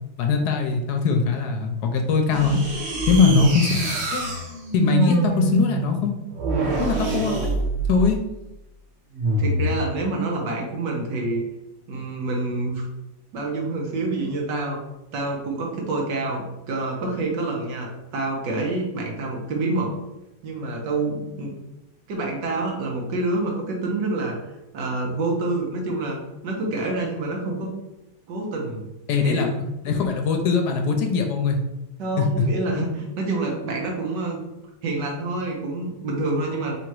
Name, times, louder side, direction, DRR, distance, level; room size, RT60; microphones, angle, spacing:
voice 1, 0.2-2.6 3.1-3.7 4.1-4.3 4.7-6.1 6.8-7.5 7.9-8.2 29.1-29.5 29.8-31.6 32.2-32.3, left 5 dB, 75° left, 4 dB, 1.1 m, -21 dB
sound 1, 2.3-8.2 9.1-9.8, right 2 dB, 45° right, 1.0 m, -25 dB
voice 2, 3.1-3.5 9.4-11.4 11.9-12.8 13.3-14.8 15.1-19.9 20.4-21.5 22.1-24.3 24.7-26.2 26.4-27.7 28.3-28.8 29.2-29.5 32.0-34.4 34.8-36.8, right 2 dB, 75° right, 0 dB, 1.6 m, -27 dB
3.7 x 2.9 x 4.6 m, 0.94 s
omnidirectional pair, 1.9 m